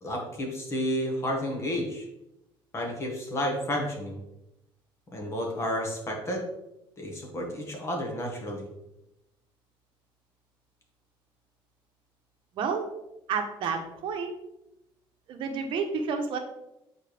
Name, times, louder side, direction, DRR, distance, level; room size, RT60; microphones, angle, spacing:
voice 1, 0.0-2.1 2.7-4.2 5.1-6.4 7.0-8.7, equal, 30° left, 0 dB, 1.5 m, -31 dB
voice 2, 13.3-14.3 15.3-16.4, right 5 dB, 60° right, 5 dB, 1.0 m, -30 dB
8.2 x 4.4 x 3.4 m, 0.88 s
cardioid pair, 145°, 9 cm